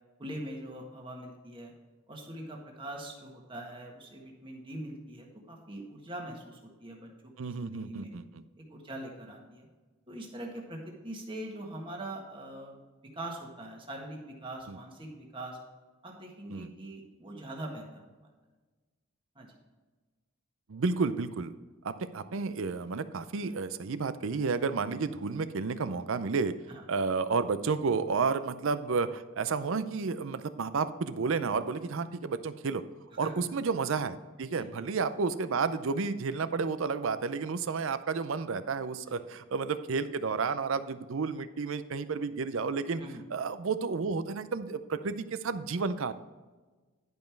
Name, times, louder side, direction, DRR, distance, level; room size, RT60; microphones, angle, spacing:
voice 1, 0.2-1.7 2.1-8.1 8.7-9.7 10.1-12.7 13.1-15.6 16.0-18.1 19.3-19.6 26.7-26.8 33.2-33.4 34.5-34.7 39.1-39.2 43.0-43.2, right 1 dB, 25° right, 0 dB, 1.6 m, -42 dB
voice 2, 7.4-8.2 14.7-14.8 16.5-16.7 20.7-21.5 21.8-26.5 26.9-32.8 33.2-43.0 43.3-46.1, right 4 dB, 65° right, 13 dB, 0.5 m, -31 dB
11.0 x 5.4 x 4.5 m, 1.3 s
head